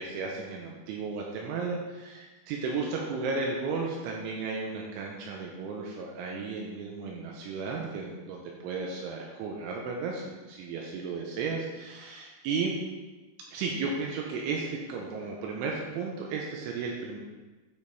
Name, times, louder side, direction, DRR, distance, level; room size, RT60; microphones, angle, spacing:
voice 1, 0.0-12.8 13.5-17.2, right 4 dB, 85° right, -1 dB, 2.9 m, -34 dB
9.4 x 5.1 x 4.1 m, 1.2 s
omnidirectional pair, 5.9 m